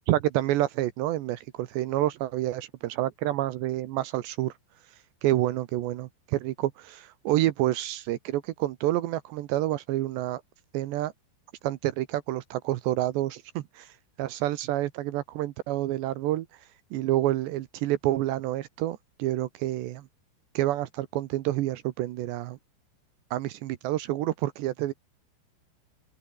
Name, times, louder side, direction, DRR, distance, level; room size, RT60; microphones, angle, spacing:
voice 1, 0.1-4.5 5.2-10.4 10.7-11.1 11.6-13.9 14.2-16.5 16.9-20.1 20.5-22.6 23.3-24.9, right 15 dB, 75° right, 3.0 m, -28 dB
open air
omnidirectional pair, 5.5 m